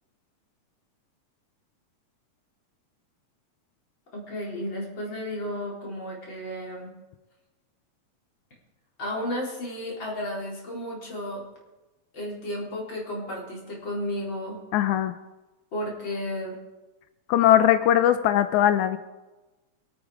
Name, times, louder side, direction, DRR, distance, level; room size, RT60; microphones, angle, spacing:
voice 1, 4.1-6.9 9.0-11.4 12.1-14.6 15.7-16.6, left 1 dB, 40° left, -3 dB, 4.8 m, -33 dB
voice 2, 14.7-15.1 17.3-19.0, left 11 dB, 90° left, 10 dB, 2.1 m, -20 dB
25.0 x 9.0 x 5.0 m, 1.1 s
omnidirectional pair, 3.4 m